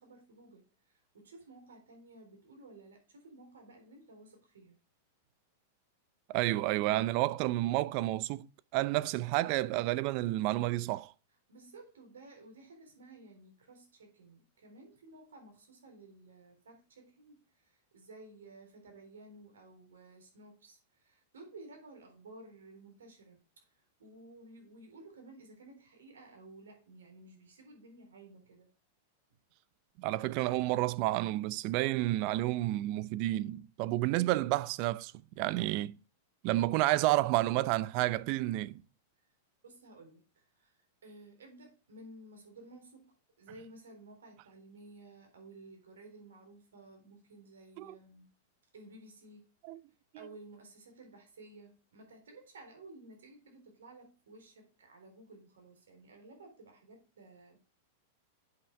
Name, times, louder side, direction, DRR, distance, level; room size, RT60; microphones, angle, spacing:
voice 1, 0.0-4.8 11.5-28.7 39.6-48.3 48.7-49.5 50.2-57.6, right 2 dB, 85° right, 3.8 m, -54 dB
voice 2, 6.3-8.5 8.7-11.1 30.0-36.0 36.4-38.8 47.8-48.0 49.6-49.8, right 17 dB, 50° right, 0.5 m, -30 dB
8.0 x 5.7 x 4.7 m
hypercardioid pair, 115°, 0 cm